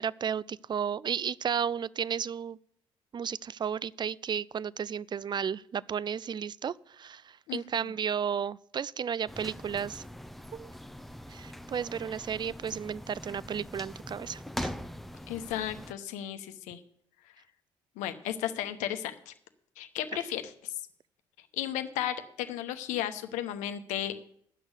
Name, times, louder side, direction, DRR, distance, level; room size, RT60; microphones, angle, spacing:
voice 1, 0.0-2.6 3.1-10.0 10.5-10.7 11.3-14.7, right 7 dB, 35° right, 0.4 m, -33 dB
voice 2, 7.5-7.9 15.3-16.8 18.0-19.3 19.8-20.7 21.5-24.1, left 11 dB, 75° left, 0.9 m, -34 dB
sound 1, 9.3-15.9, equal, ahead, 0.8 m, -42 dB
11.0 x 6.2 x 8.1 m
hypercardioid pair, 50°, 13 cm